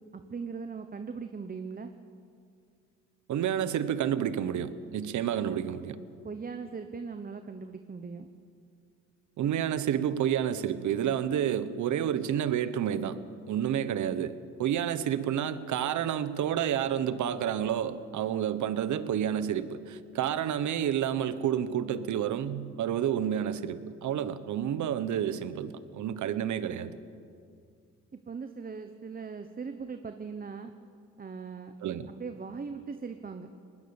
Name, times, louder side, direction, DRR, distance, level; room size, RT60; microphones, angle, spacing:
voice 1, 0.1-1.9 6.2-8.3 28.1-30.7 31.2-31.7 32.1-33.5, right 5 dB, 30° right, 8 dB, 1.1 m, -39 dB
voice 2, 3.3-6.0 9.4-13.2 13.5-27.0 31.8-32.1, right 9 dB, 75° right, 13 dB, 1.2 m, -30 dB
20.0 x 20.0 x 7.2 m, 2.3 s
cardioid pair, 90°, 30 cm